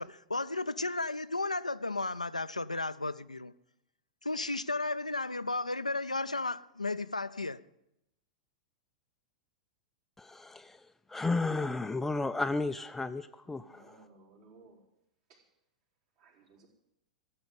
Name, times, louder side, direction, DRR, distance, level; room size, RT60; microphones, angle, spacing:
voice 1, 0.0-3.5 4.2-7.6, left 2 dB, 85° left, 0.5 m, -34 dB
voice 2, 10.2-13.9, left 3 dB, 10° left, 0.5 m, -33 dB
voice 3, 13.4-14.8 15.3-15.4 16.2-16.7, right 3 dB, 55° right, 4.1 m, -59 dB
15.0 x 7.9 x 9.5 m
figure-of-eight pair, 95°, 4 cm